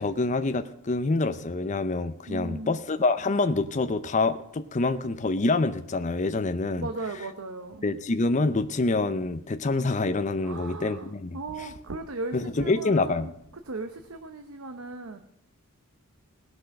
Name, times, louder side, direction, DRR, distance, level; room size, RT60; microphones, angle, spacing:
voice 1, 0.0-6.9 7.8-11.7 12.3-13.3, left 3 dB, 35° left, 10 dB, 0.6 m, -26 dB
voice 2, 2.3-2.8 6.8-7.8 10.4-13.3 13.7-15.2, right 3 dB, 75° right, 7 dB, 0.9 m, -37 dB
18.0 x 6.2 x 6.5 m, 0.74 s
head